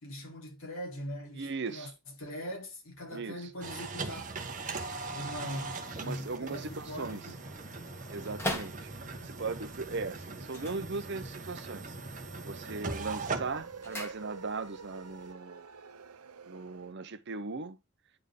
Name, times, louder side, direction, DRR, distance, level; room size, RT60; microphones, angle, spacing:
voice 1, 0.0-1.9 2.2-4.3 5.1-7.3, equal, 65° left, 3.8 m, -41 dB
voice 2, 1.3-1.9 3.1-3.5 6.0-7.2 8.1-12.0 12.5-15.7 16.5-17.8, right 3 dB, 55° right, 0.9 m, -38 dB
sound 1, 3.6-15.3, right 3 dB, 35° right, 1.3 m, -41 dB
sound 2, 4.4-9.4 10.4-11.6 11.8-12.3 12.7-14.8 15.0-15.1, left 1 dB, 10° left, 2.0 m, -43 dB
sound 3, 10.4-16.9, right 5 dB, 85° right, 0.7 m, -49 dB
9.9 x 4.6 x 3.4 m
head